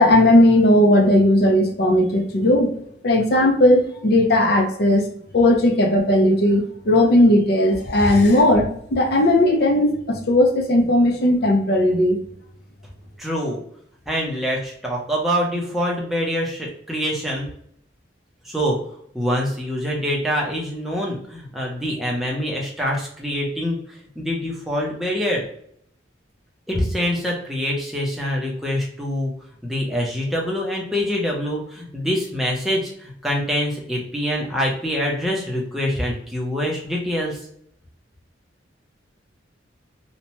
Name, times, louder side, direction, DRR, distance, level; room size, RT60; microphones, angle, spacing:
voice 1, 0.0-2.8 3.0-5.0 5.3-12.2, left 1 dB, 55° left, 3 dB, 0.5 m, -16 dB
voice 2, 13.2-13.6 14.1-17.5 18.4-18.8 19.1-25.4 26.7-29.3 29.6-37.5, equal, ahead, -2 dB, 0.5 m, -25 dB
2.7 x 2.1 x 2.9 m, 0.69 s
head